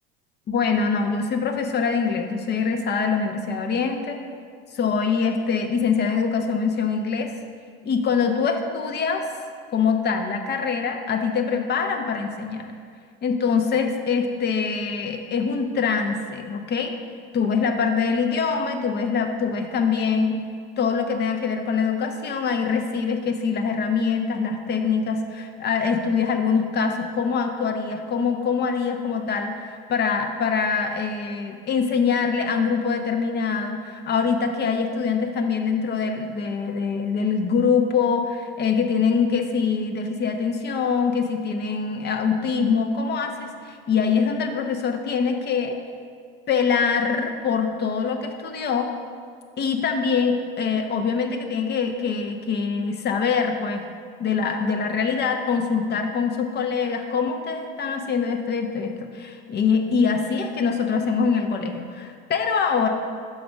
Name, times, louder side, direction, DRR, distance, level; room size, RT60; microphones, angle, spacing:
voice 1, 0.5-4.2 4.7-7.3 7.8-9.2 9.7-12.7 13.2-16.9 17.3-20.4 20.8-45.8 46.5-48.9 49.6-53.8 54.2-62.9, left 5 dB, 35° left, 4 dB, 0.8 m, -24 dB
6.0 x 5.2 x 5.1 m, 2.1 s
hypercardioid pair, 90°, 30 cm